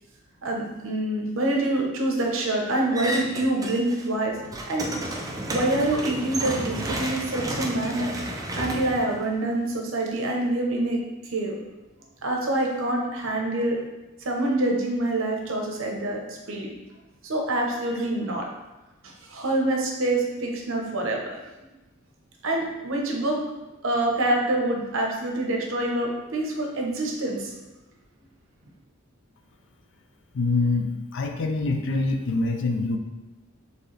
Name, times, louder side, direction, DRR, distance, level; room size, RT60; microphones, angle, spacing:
voice 1, 0.4-4.4 4.7-4.9 5.5-8.1 8.5-11.0 11.2-11.5 12.2-13.8 14.2-16.7 17.2-18.4 19.0-21.4 22.4-23.4 23.8-27.5, right 1 dB, 70° right, 0 dB, 0.8 m, -26 dB
sound 1, 2.9-4.1 4.4-9.7, right 1 dB, 15° right, 0.4 m, -32 dB
voice 2, 30.3-33.0, left 3 dB, 65° left, 5 dB, 0.5 m, -25 dB
4.5 x 3.2 x 3.2 m, 1.0 s
head